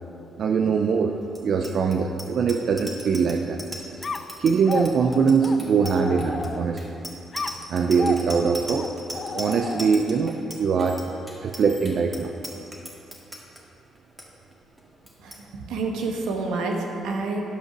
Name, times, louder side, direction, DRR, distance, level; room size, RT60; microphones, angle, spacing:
voice 1, 0.4-1.1 1.4-3.6 4.4-7.0 7.7-8.9 9.3-11.0 11.4-12.3, right 5 dB, 60° right, 5 dB, 0.5 m, -22 dB
Bicycle bell, 1.3-13.6 14.0-14.2 14.5-14.8 15.1-15.4, equal, 10° right, 1.8 m, -38 dB
sound 1, 4.0-6.9 7.3-10.2, left 4 dB, 35° left, 0.4 m, -34 dB
voice 2, 15.2-17.4, right 3 dB, 90° right, 1 dB, 1.2 m, -28 dB
11.5 x 5.8 x 6.0 m, 2.8 s
cardioid pair, 90°, 0 cm